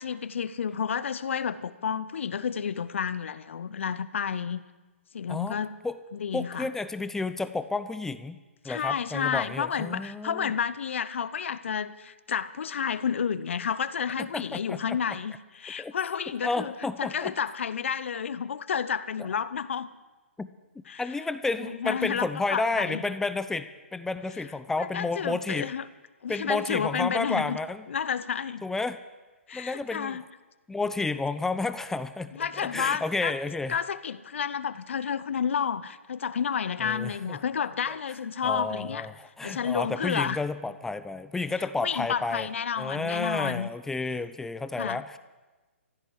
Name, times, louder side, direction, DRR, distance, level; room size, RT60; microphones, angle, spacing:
voice 1, 0.0-4.6 5.1-5.7 6.1-6.7 8.6-16.7 17.0-19.9 20.9-21.0 21.7-23.0 24.8-25.8 26.2-27.6 27.9-28.6 29.5-30.2 32.4-33.4 33.7-39.1 39.4-40.4 41.8-43.7 44.8-45.0, left 7 dB, 65° left, 15 dB, 0.7 m, -30 dB
voice 2, 6.3-8.4 8.6-10.5 14.3-14.8 15.8-15.9 16.4-17.3 20.4-20.5 21.0-25.7 26.3-27.8 28.6-29.0 29.5-30.2 30.7-33.8 36.8-37.4 37.9-38.0 38.4-42.5 42.8-45.2, left 3 dB, 5° left, 12 dB, 0.5 m, -31 dB
15.5 x 8.1 x 9.7 m, 1.2 s
figure-of-eight pair, 130°, 7 cm